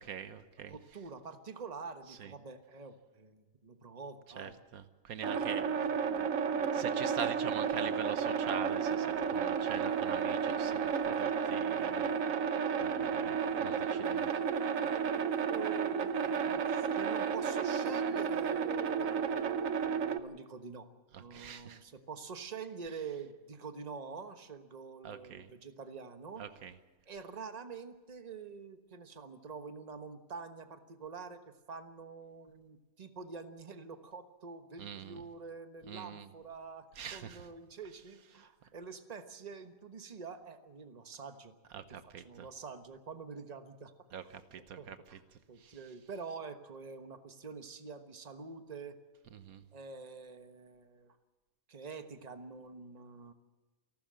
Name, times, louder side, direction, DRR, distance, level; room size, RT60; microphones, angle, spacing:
voice 1, 0.0-0.8 2.1-2.3 4.4-5.7 6.7-12.1 12.8-14.3 21.1-21.8 25.0-25.5 26.4-26.7 34.8-35.2 35.9-36.3 36.9-37.5 38.4-38.5 41.7-42.5 44.1-45.8 49.3-49.7, right 8 dB, 85° right, 11 dB, 1.5 m, -44 dB
voice 2, 0.7-4.6 5.3-6.0 15.5-20.9 21.1-26.4 27.1-31.4 31.7-36.9 37.1-41.8 42.2-43.9 44.8-45.2 45.5-49.0 49.7-51.2 51.7-53.3, right 5 dB, 30° right, 8 dB, 1.3 m, -46 dB
sound 1, 5.2-20.2, right 6 dB, 70° right, 1.2 m, -32 dB
28.0 x 12.5 x 7.7 m, 1.2 s
omnidirectional pair, 1.5 m